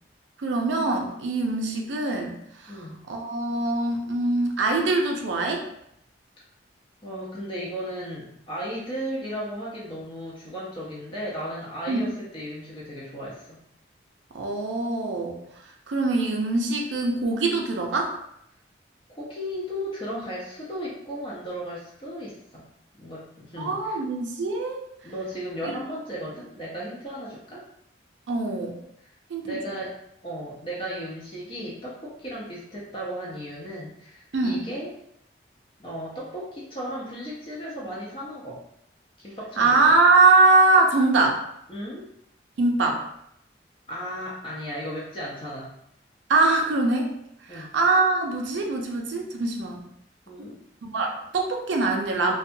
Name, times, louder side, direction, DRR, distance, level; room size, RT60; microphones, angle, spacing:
voice 1, 0.4-2.3 2.7-5.6 11.9-12.1 14.3-15.4 15.9-18.1 23.6-24.8 28.3-28.7 29.3-29.6 34.3-34.6 39.6-41.4 42.6-43.0 46.3-47.1 47.5-49.8 50.4-50.5 50.8-52.4, right 3 dB, 80° right, 1 dB, 0.4 m, -23 dB
voice 2, 2.7-3.0 7.0-13.6 19.1-22.6 23.0-24.0 25.0-27.6 29.0-29.1 29.4-34.9 35.8-38.6 39.2-39.8 41.7-42.0 43.9-45.7 47.5-47.7 50.3-50.6, equal, 30° left, -6 dB, 0.5 m, -35 dB
2.6 x 2.2 x 2.5 m, 0.75 s
head